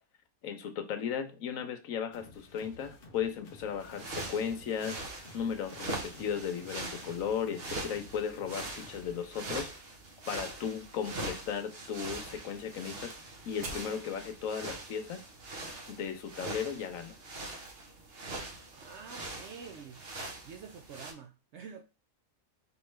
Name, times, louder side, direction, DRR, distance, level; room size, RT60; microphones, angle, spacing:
voice 1, 0.4-5.0 5.3-9.7 10.3-13.1 13.4-15.2 15.9-17.1, left 7 dB, 75° left, 1.1 m, -36 dB
sound 1, 2.1-9.2, left 2 dB, 50° left, 0.7 m, -54 dB
sound 2, 3.8-21.1, right 2 dB, 45° right, 1.1 m, -42 dB
voice 2, 18.7-20.0 20.4-21.8, right 6 dB, 65° right, 0.7 m, -47 dB
5.0 x 3.1 x 3.2 m
omnidirectional pair, 1.5 m